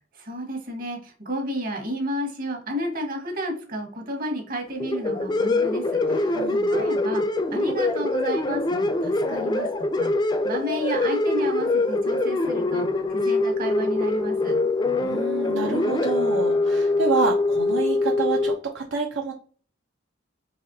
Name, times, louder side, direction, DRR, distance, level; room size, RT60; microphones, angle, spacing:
voice 1, 0.1-14.6, equal, 50° right, 2 dB, 1.2 m, -32 dB
sound 1, 4.8-18.5, left 2 dB, 20° left, 0.4 m, -24 dB
voice 2, 6.3-6.7 15.0-19.3, right 5 dB, 75° right, 1 dB, 0.5 m, -28 dB
4.1 x 2.9 x 2.6 m, 0.43 s
head